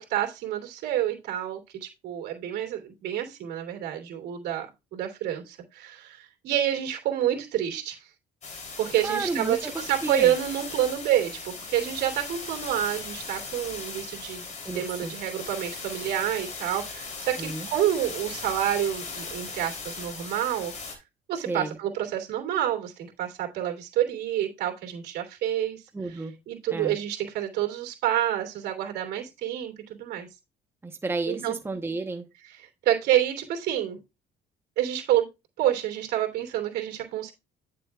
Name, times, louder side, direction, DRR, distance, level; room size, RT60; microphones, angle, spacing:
voice 1, 0.0-4.7 4.9-8.0 8.8-14.4 14.7-20.7 21.3-25.8 26.5-30.3 31.3-31.5 32.8-34.0 34.8-35.3 35.6-37.3, right 11 dB, 75° right, 3.0 m, -28 dB
sound 1, 8.4-21.0, left 4 dB, 45° left, 3.4 m, -38 dB
voice 2, 9.0-10.3 14.6-15.1 17.4-17.7 21.5-21.8 25.9-26.3 26.7-27.0 30.8-32.2, right 3 dB, 15° right, 1.0 m, -32 dB
10.0 x 6.7 x 2.4 m
cardioid pair, 110°, 17 cm